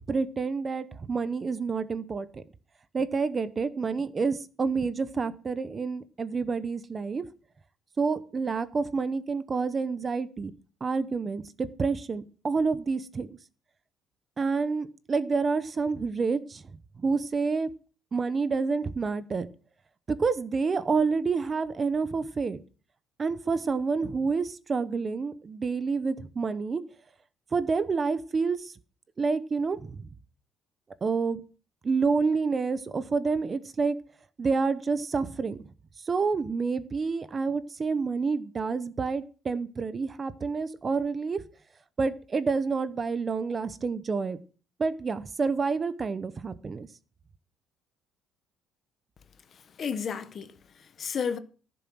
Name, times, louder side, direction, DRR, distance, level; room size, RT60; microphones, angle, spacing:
voice 1, 0.1-2.4 2.9-7.2 8.0-10.5 10.8-13.3 14.4-16.6 17.0-17.7 18.1-19.5 20.1-22.6 23.2-26.8 27.5-28.7 29.2-30.1 31.0-31.4 31.8-34.0 34.4-35.6 36.0-41.4 42.0-44.4 44.8-46.9, right 4 dB, 25° right, 0.8 m, -28 dB
voice 2, 49.5-51.4, left 6 dB, 35° left, 1.0 m, -33 dB
15.0 x 7.0 x 6.2 m
cardioid pair, 175°, 0 cm